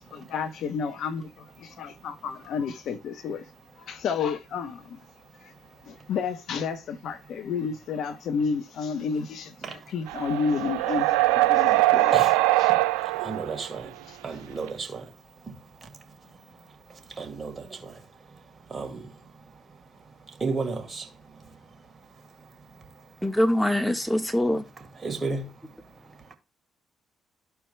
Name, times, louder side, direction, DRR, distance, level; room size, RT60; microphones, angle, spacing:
voice 1, 0.0-3.5 3.8-5.0 5.4-5.5 5.8-13.1 14.1-14.4, left 6 dB, 65° left, 0.8 m, -31 dB
sound 1, 10.1-13.6 14.7-14.8, right 17 dB, 85° right, 0.3 m, -22 dB
voice 2, 13.2-13.9 14.2-15.0 17.2-17.5 18.7-19.0 20.4-21.0 25.0-25.4, right 4 dB, 35° right, 2.1 m, -31 dB
voice 3, 23.2-24.6, left 1 dB, ahead, 1.4 m, -23 dB
13.5 x 4.6 x 2.2 m
hypercardioid pair, 50°, 0 cm